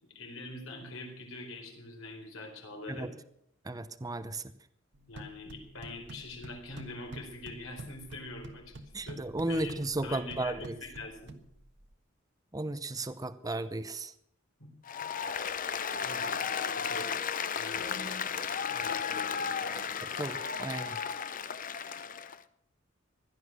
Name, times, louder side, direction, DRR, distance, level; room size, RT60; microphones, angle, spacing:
voice 1, 0.0-3.1 5.1-8.8 9.1-9.7 10.0-11.4 14.6-14.7 16.0-17.1 17.6-18.4 18.7-19.9, left 2 dB, 85° left, 2 dB, 4.5 m, -44 dB
voice 2, 3.6-4.4 8.9-10.8 12.5-14.1 20.2-21.0, right 2 dB, 20° right, 12 dB, 0.7 m, -35 dB
sound 1, 4.9-11.9, right 1 dB, 60° right, 1.5 m, -48 dB
Applause, 14.9-22.4, left 7 dB, 45° left, 0.7 m, -34 dB
16.5 x 11.5 x 6.2 m, 0.71 s
head